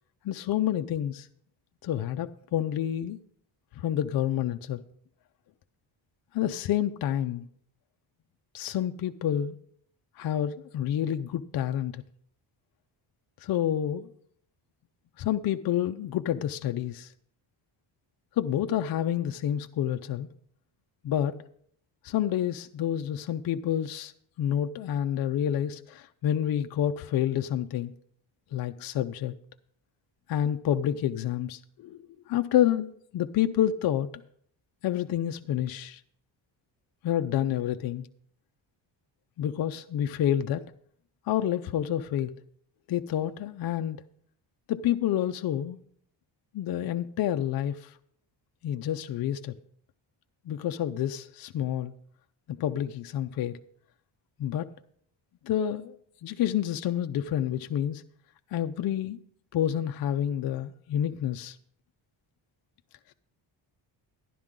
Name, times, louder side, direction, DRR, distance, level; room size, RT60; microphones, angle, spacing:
voice 1, 0.2-1.3 1.8-3.2 3.7-4.8 6.3-7.4 8.5-9.6 10.2-12.0 13.4-14.1 15.2-17.1 18.4-20.3 21.0-21.3 22.0-24.1 24.4-27.9 28.5-29.3 30.3-32.0 32.3-34.1 34.8-36.0 37.0-38.1 39.4-40.6 41.3-42.4 42.9-44.0 44.7-45.8 46.5-48.0 48.6-49.6 50.5-51.9 52.5-53.6 54.4-54.7 55.4-58.0 58.5-59.2 59.5-61.6 63.1-63.2, left 10 dB, 50° left, 0.5 m, -28 dB
12.0 x 11.0 x 3.7 m
cardioid pair, 150°, 47 cm